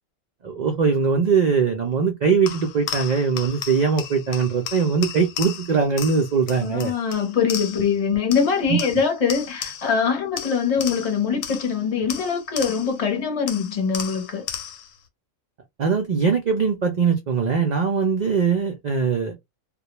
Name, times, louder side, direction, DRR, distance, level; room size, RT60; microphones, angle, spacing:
voice 1, 0.4-6.9 8.7-8.8 15.8-19.4, right 5 dB, 90° right, 0.3 m, -21 dB
sound 1, 2.5-8.0 8.3-10.0 10.4-13.1 13.5-15.0, left 9 dB, 85° left, 1.0 m, -35 dB
voice 2, 6.6-14.5, left 6 dB, 35° left, 0.7 m, -23 dB
2.3 x 2.1 x 2.9 m
omnidirectional pair, 1.4 m